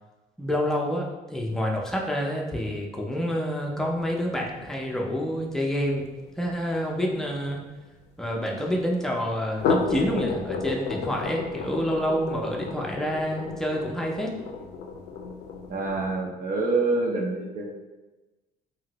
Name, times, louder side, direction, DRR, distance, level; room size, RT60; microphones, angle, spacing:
voice 1, 0.4-6.1 6.4-7.6 8.2-14.4, equal, 5° left, -1 dB, 0.5 m, -28 dB
sound 1, 3.7-8.3 9.4-16.2, left 4 dB, 80° left, 0.4 m, -33 dB
voice 2, 15.7-17.7, right 3 dB, 55° right, -1 dB, 0.6 m, -26 dB
2.8 x 2.5 x 2.9 m, 1.1 s
cardioid pair, 110°, 17 cm